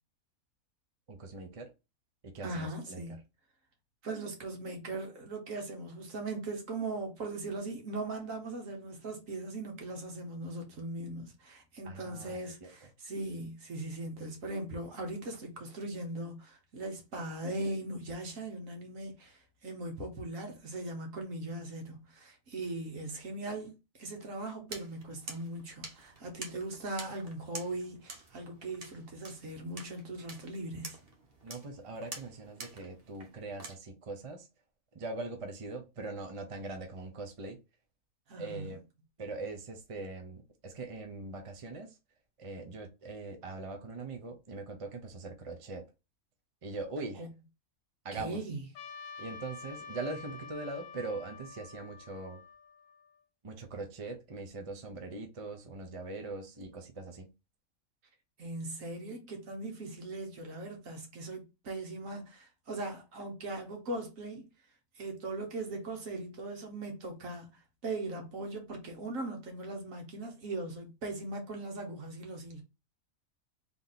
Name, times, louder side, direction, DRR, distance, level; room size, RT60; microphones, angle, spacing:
voice 1, 1.1-1.7 2.2-3.0 11.8-12.7 31.4-34.5 34.9-37.6 38.4-38.8 39.2-42.0 42.4-45.9 46.6-47.3 48.0-48.4 49.2-52.4 53.4-57.3, right 3 dB, 30° right, 0.7 m, -41 dB
voice 2, 2.4-3.2 4.0-23.7 24.0-31.0 38.3-38.7 47.2-47.3 48.1-48.6 58.4-64.4 65.0-72.6, right 2 dB, 65° right, 1.6 m, -39 dB
sound 1, 24.7-33.8, right 3 dB, 45° right, 1.1 m, -48 dB
Trumpet, 48.8-53.2, left 5 dB, 70° left, 1.0 m, -48 dB
3.6 x 3.0 x 4.0 m
omnidirectional pair, 1.5 m